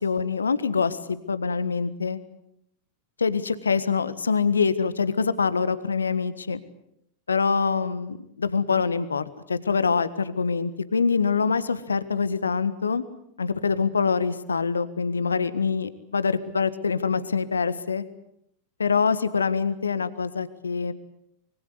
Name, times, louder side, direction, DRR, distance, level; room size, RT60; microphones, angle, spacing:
voice 1, 0.0-2.2 3.2-6.6 7.3-13.0 13.4-18.0 18.8-20.9, left 5 dB, 75° left, 15 dB, 1.5 m, -25 dB
25.0 x 24.0 x 8.0 m, 0.76 s
figure-of-eight pair, 90°, 0 cm